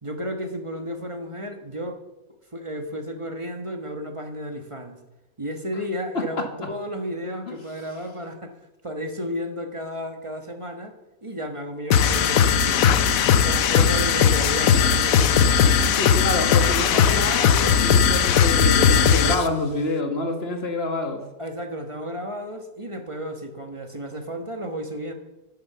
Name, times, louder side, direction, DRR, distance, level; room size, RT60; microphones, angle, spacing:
voice 1, 0.0-2.0 2.5-5.0 5.4-8.5 8.8-10.9 11.2-13.0 13.4-16.0 21.4-25.1, equal, 25° right, 5 dB, 1.4 m, -33 dB
sound 1, 11.9-19.5, left 7 dB, 80° left, 1.2 m, -18 dB
voice 2, 16.0-21.2, left 2 dB, 45° left, 5 dB, 2.0 m, -27 dB
11.5 x 9.3 x 6.9 m, 1.0 s
omnidirectional pair, 1.4 m